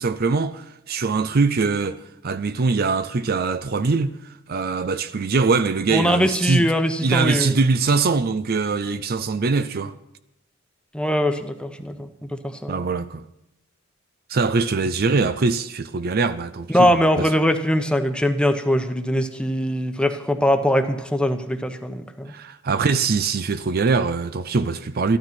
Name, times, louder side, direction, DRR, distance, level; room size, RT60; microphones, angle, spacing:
voice 1, 0.0-6.7 7.0-9.9 12.7-13.2 14.3-17.1 22.3-25.2, right 4 dB, 50° right, 0.5 m, -22 dB
voice 2, 5.9-7.6 10.9-12.9 16.7-22.3, equal, 5° left, 1.0 m, -22 dB
13.5 x 12.5 x 5.9 m
head